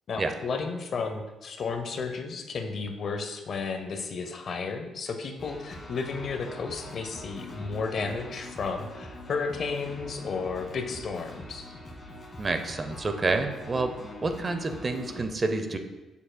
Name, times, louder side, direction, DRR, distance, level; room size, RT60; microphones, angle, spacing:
voice 1, 0.1-11.7, left 4 dB, 55° left, 6 dB, 0.7 m, -33 dB
sound 1, 5.4-15.3, left 1 dB, 35° left, 1.7 m, -43 dB
voice 2, 12.4-13.9 14.2-15.8, right 3 dB, 30° right, 7 dB, 0.7 m, -28 dB
7.4 x 6.9 x 2.3 m, 1.1 s
cardioid pair, 90°, 0 cm